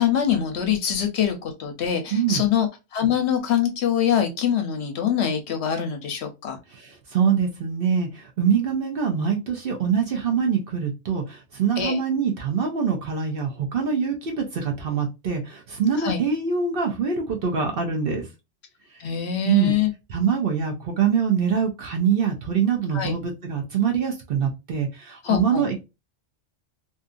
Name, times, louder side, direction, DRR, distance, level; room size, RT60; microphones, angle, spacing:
voice 1, 0.0-6.6 11.8-12.0 16.0-16.2 19.0-19.9 22.9-23.1 25.2-25.7, left 9 dB, 65° left, 5 dB, 0.8 m, -24 dB
voice 2, 2.1-2.4 6.7-18.3 19.5-19.7 20.1-25.8, right 7 dB, 55° right, 2 dB, 0.7 m, -24 dB
2.7 x 2.4 x 2.4 m, 0.25 s
omnidirectional pair, 1.3 m